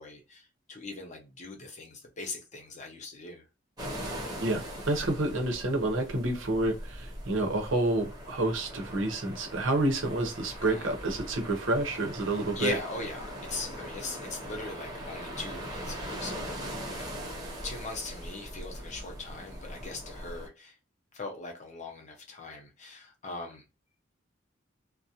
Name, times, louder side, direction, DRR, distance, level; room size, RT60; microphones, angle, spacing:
voice 1, 0.0-3.4 10.5-10.9 12.5-16.6 16.9-17.2 17.6-20.7 21.1-23.6, left 3 dB, 40° left, 0.7 m, -40 dB
sound 1, 3.8-20.5, equal, 20° right, 0.9 m, -41 dB
voice 2, 4.4-12.7, right 2 dB, 90° right, 0.8 m, -29 dB
2.4 x 2.1 x 2.8 m
head